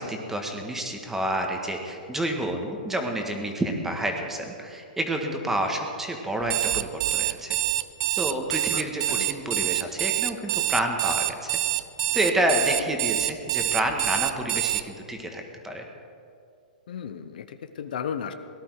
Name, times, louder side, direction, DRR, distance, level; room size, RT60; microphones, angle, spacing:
voice 1, 0.0-7.6 8.1-11.6 12.1-15.8, right 1 dB, 5° right, 3 dB, 1.5 m, -29 dB
Alarm, 6.4-14.8, right 18 dB, 45° right, 0.5 m, -26 dB
voice 2, 8.7-9.3 16.9-18.3, left 8 dB, 70° left, 9 dB, 0.9 m, -35 dB
18.0 x 11.0 x 4.8 m, 2.4 s
hypercardioid pair, 135°, 5 cm